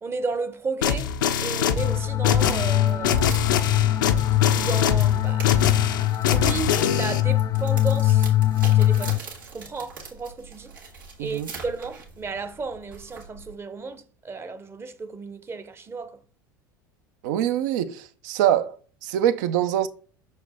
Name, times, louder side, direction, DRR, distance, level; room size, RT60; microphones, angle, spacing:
voice 1, 0.0-1.1 1.4-3.6 4.5-5.7 6.3-8.3 8.6-9.3 9.5-10.8 11.2-16.2, right 4 dB, 20° right, 0.7 m, -33 dB
sound 1, 0.8-7.2, left 8 dB, 75° left, 0.6 m, -24 dB
sound 2, 1.8-9.2, left 13 dB, 35° left, 0.3 m, -22 dB
sound 3, 2.8-13.5, right 4 dB, 90° right, 1.9 m, -43 dB
voice 2, 11.2-11.5 17.2-18.8 19.0-19.9, right 11 dB, 65° right, 0.6 m, -24 dB
6.2 x 4.4 x 3.5 m
hypercardioid pair, 80°, 11 cm